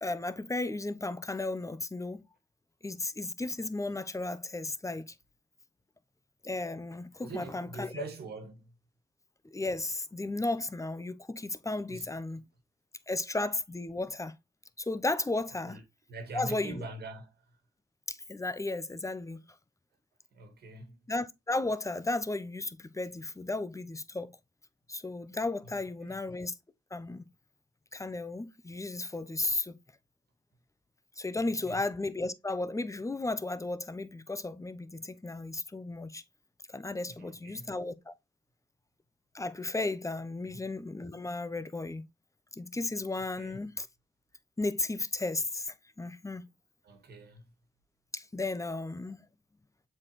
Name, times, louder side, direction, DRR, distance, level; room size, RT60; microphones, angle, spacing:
voice 1, 0.0-2.2 2.8-5.1 6.4-8.0 9.5-12.4 13.1-14.3 14.8-15.8 16.3-16.8 18.1-19.4 21.1-24.3 24.9-26.5 26.9-27.3 27.9-29.8 31.2-36.2 36.7-38.1 39.3-42.0 42.5-43.9 44.6-46.4 48.1-49.2, left 2 dB, 15° left, 0.9 m, -34 dB
voice 2, 7.2-8.7 11.9-12.1 12.4-12.5 15.7-15.8 16.1-17.4 20.3-21.0 25.6-25.7 26.0-26.2 31.6-31.8 37.1-37.7 40.4-40.6 43.4-43.6 46.8-47.5, right 3 dB, 60° right, 1.8 m, -44 dB
7.3 x 4.3 x 3.2 m
hypercardioid pair, 45°, 19 cm